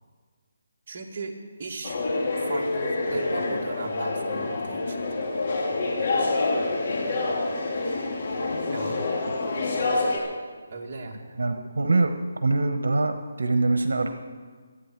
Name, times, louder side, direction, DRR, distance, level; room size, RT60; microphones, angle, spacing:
voice 1, 0.9-2.0 2.4-5.0 8.7-9.0 10.7-11.4, right 3 dB, 40° right, -1 dB, 2.1 m, -37 dB
sound 1, 1.8-10.2, left 2 dB, 50° left, 3.1 m, -27 dB
voice 2, 11.4-12.1 12.4-14.1, right 3 dB, 80° right, 7 dB, 1.2 m, -23 dB
25.5 x 9.1 x 4.7 m, 1.6 s
hypercardioid pair, 165°, 0 cm